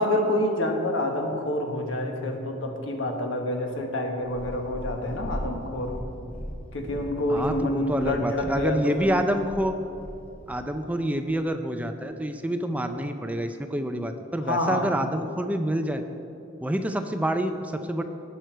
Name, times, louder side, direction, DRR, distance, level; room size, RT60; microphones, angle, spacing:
voice 1, 0.0-5.9 6.7-9.1 14.5-14.8, left 1 dB, 75° left, 3 dB, 1.4 m, -27 dB
Purr, 4.2-10.6 11.3-11.4, equal, 10° left, 1.6 m, -38 dB
voice 2, 7.3-9.7 10.5-16.0 16.6-18.0, right 1 dB, 10° right, 7 dB, 0.4 m, -27 dB
18.0 x 6.3 x 4.6 m, 2.7 s
head